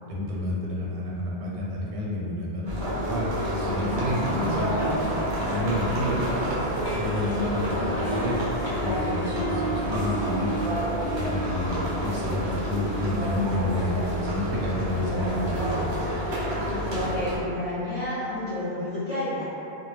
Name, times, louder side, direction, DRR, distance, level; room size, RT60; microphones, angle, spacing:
voice 1, 0.1-2.8 3.0-4.9 5.3-6.3 6.9-8.4 8.8-10.6 11.1-15.9, left 1 dB, 85° right, -4 dB, 0.9 m, -30 dB
sound 1, 2.7-17.4, equal, 45° right, 0.4 m, -29 dB
voice 2, 4.2-5.2 16.5-19.4, left 1 dB, 40° left, -12 dB, 0.7 m, -32 dB
Harp, 6.8-13.7, right 2 dB, 85° left, 0.9 m, -34 dB
2.2 x 2.1 x 3.1 m, 2.8 s
omnidirectional pair, 1.1 m